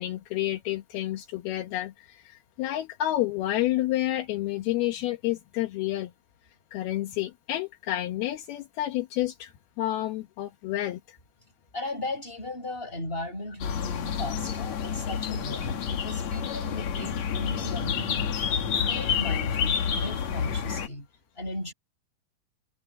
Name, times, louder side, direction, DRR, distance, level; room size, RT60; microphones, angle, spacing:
voice 1, 0.0-6.1 6.7-9.5 9.8-11.2, left 14 dB, 75° left, 3.0 m, -29 dB
voice 2, 11.7-18.4 18.8-21.1 21.4-21.7, left 1 dB, 15° left, 8.1 m, -37 dB
sound 1, 13.6-20.9, left 7 dB, 50° left, 2.6 m, -29 dB
omnidirectional pair, 4.6 m